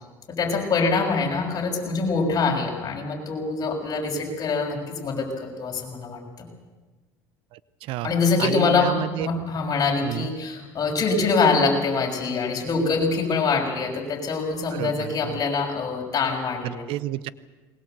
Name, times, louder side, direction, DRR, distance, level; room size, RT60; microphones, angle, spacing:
voice 1, 0.3-6.5 8.0-16.8, left 4 dB, 40° left, 1 dB, 6.3 m, -24 dB
voice 2, 7.5-8.1 8.4-9.3 10.0-10.3 14.7-15.4 16.6-17.3, right 15 dB, 65° right, 17 dB, 0.8 m, -31 dB
21.5 x 20.0 x 8.0 m, 1.3 s
supercardioid pair, 100°, 10 cm